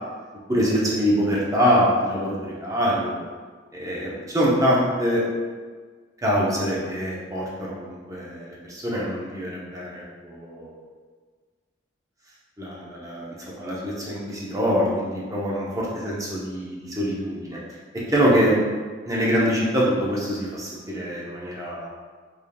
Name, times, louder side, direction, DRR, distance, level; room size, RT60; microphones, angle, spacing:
voice 1, 0.5-3.3 3.7-5.2 6.2-10.9 12.6-17.6 17.9-18.5 19.0-21.9, equal, 20° right, -6 dB, 0.7 m, -24 dB
3.9 x 3.4 x 2.3 m, 1.5 s
head